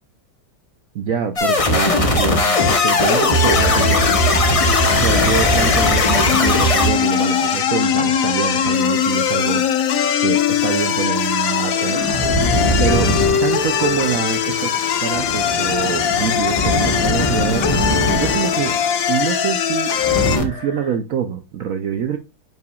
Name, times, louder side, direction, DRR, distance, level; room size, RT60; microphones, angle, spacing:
voice 1, 0.9-4.0 5.0-12.0 12.4-12.5 12.8-13.1 13.4-17.7 18.1-18.7 19.1-19.9 20.3-22.2, right 7 dB, 70° right, 0.8 m, -25 dB
sound 1, 1.3-21.0, left 1 dB, 5° left, 2.6 m, -39 dB
sound 2, 1.4-8.7 11.1-19.5 19.7-20.5, left 1 dB, 35° left, 0.5 m, -20 dB
sound 3, 2.5-20.4, left 8 dB, 60° left, 1.0 m, -20 dB
9.0 x 5.7 x 2.3 m
omnidirectional pair, 2.0 m